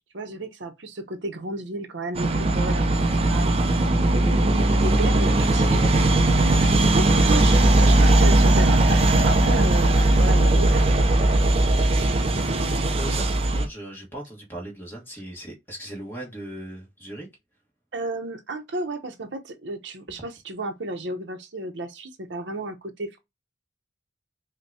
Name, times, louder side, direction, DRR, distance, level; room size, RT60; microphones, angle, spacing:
voice 1, 0.1-3.5 4.1-11.5 11.8-12.6 17.9-23.2, right 2 dB, 75° right, 0.7 m, -33 dB
sound 1, 2.1-13.7, right 2 dB, 30° right, 0.5 m, -19 dB
voice 2, 7.3-7.7 12.9-17.3, right 1 dB, 10° left, 1.4 m, -38 dB
5.3 x 2.2 x 2.7 m
head